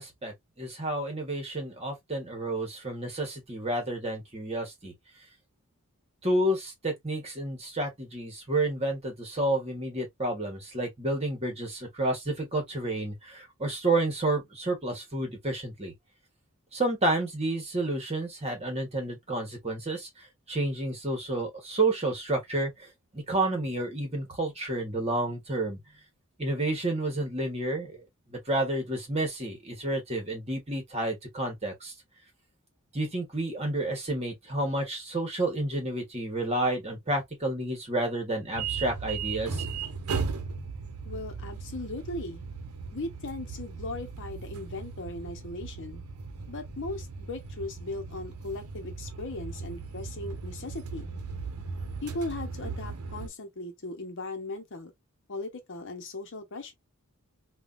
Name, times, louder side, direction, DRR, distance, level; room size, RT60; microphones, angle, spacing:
voice 1, 0.0-4.9 6.2-15.9 16.7-25.8 26.4-28.0 28.3-31.9 32.9-39.6, right 2 dB, 30° right, 1.2 m, -30 dB
sound 1, 38.5-53.3, right 5 dB, 85° right, 0.7 m, -37 dB
voice 2, 41.1-42.4 42.9-46.0 46.5-51.1 52.0-54.9 55.3-56.7, left 2 dB, 60° left, 0.8 m, -38 dB
3.4 x 2.3 x 2.4 m
head